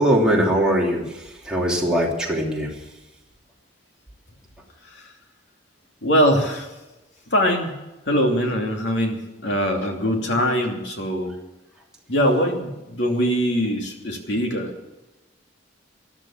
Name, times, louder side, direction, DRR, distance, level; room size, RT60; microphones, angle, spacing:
voice 1, 0.0-2.8, right 1 dB, 5° right, -3 dB, 3.0 m, -21 dB
voice 2, 6.0-6.7 7.3-7.7 8.1-11.3 12.1-14.7, equal, 60° left, 2 dB, 2.8 m, -22 dB
13.5 x 12.0 x 7.3 m, 1.0 s
head